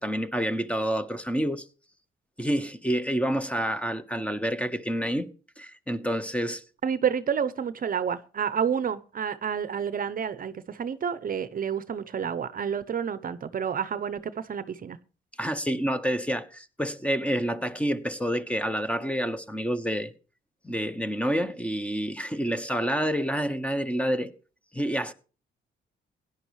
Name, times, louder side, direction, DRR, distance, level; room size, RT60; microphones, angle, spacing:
voice 1, 0.0-1.6 2.4-5.3 5.6-6.6 15.4-20.1 20.6-24.3 24.7-25.1, equal, 5° left, 1.2 m, -28 dB
voice 2, 6.8-15.0, right 7 dB, 45° right, 0.8 m, -29 dB
17.0 x 10.5 x 3.2 m
cardioid pair, 90°, 20 cm